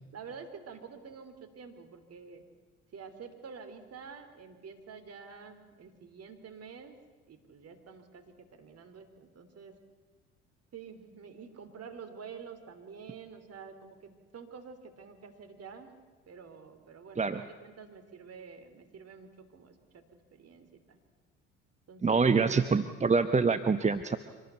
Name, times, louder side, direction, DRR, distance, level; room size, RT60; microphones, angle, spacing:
voice 1, 0.1-2.4 2.9-7.0 7.3-9.7 10.7-15.9 16.3-20.0 20.3-21.0 21.9-22.9, right 6 dB, 45° right, 7 dB, 3.3 m, -48 dB
voice 2, 22.0-24.2, right 4 dB, 20° right, 10 dB, 1.0 m, -25 dB
25.0 x 19.0 x 8.2 m, 1.3 s
hypercardioid pair, 55°, 36 cm